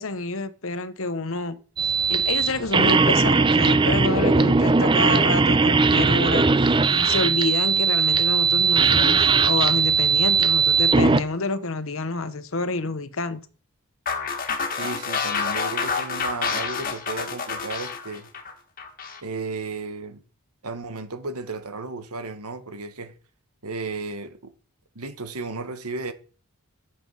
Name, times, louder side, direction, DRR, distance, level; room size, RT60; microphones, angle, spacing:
voice 1, 0.0-1.6 2.1-13.4, left 3 dB, 65° left, 1.0 m, -28 dB
sound 1, 1.8-11.2, right 4 dB, 20° right, 0.5 m, -19 dB
sound 2, 14.1-19.2, left 5 dB, 40° left, 1.7 m, -28 dB
voice 2, 14.8-18.3 19.2-20.2 20.6-23.1 23.6-24.5 24.9-26.1, right 3 dB, 85° right, 1.5 m, -34 dB
11.5 x 7.9 x 5.7 m
head